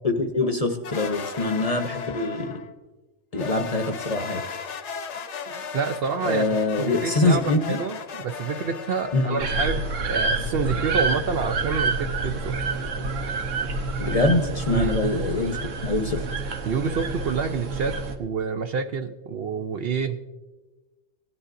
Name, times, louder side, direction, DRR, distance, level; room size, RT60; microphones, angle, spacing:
voice 1, 0.0-2.6 3.3-4.4 6.2-7.8 9.1-9.4 14.0-16.2, left 2 dB, 35° left, 6 dB, 0.7 m, -24 dB
sound 1, 0.8-2.7 3.3-10.1, left 6 dB, 70° left, 1.1 m, -36 dB
voice 2, 5.5-6.5 6.7-12.6 14.7-15.0 16.6-20.2, right 5 dB, 60° right, 7 dB, 0.7 m, -28 dB
sound 2, 9.4-18.2, right 3 dB, 85° right, 1.3 m, -28 dB
17.5 x 11.0 x 2.5 m, 1.2 s
omnidirectional pair, 1.3 m